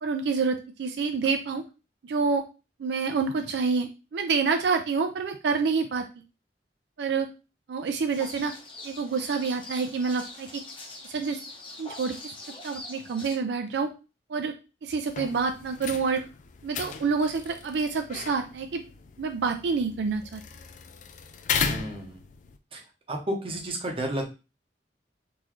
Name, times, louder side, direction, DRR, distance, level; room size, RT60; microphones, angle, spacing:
voice 1, 0.0-1.6 2.1-2.4 2.8-6.0 7.0-7.3 7.7-8.5 8.8-10.6 11.0-11.4 11.8-12.2 12.6-13.9 14.3-14.5 14.8-16.2 16.6-18.8 19.2-20.4, right 5 dB, 70° right, 6 dB, 0.4 m, -27 dB
sound 1, 8.1-13.4, left 2 dB, 30° left, 0.8 m, -43 dB
sound 2, 15.1-22.6, left 6 dB, 45° left, 0.3 m, -36 dB
voice 2, 21.5-22.2 22.7-22.8 23.1-24.2, right 1 dB, 30° right, 2 dB, 0.7 m, -32 dB
3.8 x 2.6 x 3.0 m, 0.30 s
head